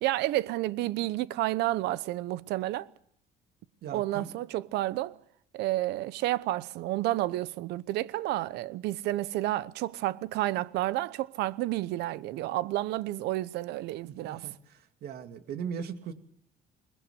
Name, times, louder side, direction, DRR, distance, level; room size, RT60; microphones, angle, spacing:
voice 1, 0.0-2.9 3.9-5.2 5.5-14.5, right 16 dB, 85° right, 0.9 m, -30 dB
voice 2, 3.8-4.3 14.0-14.5 15.0-16.1, right 7 dB, 70° right, 2.5 m, -38 dB
21.5 x 20.5 x 6.9 m
cardioid pair, 110°, 17 cm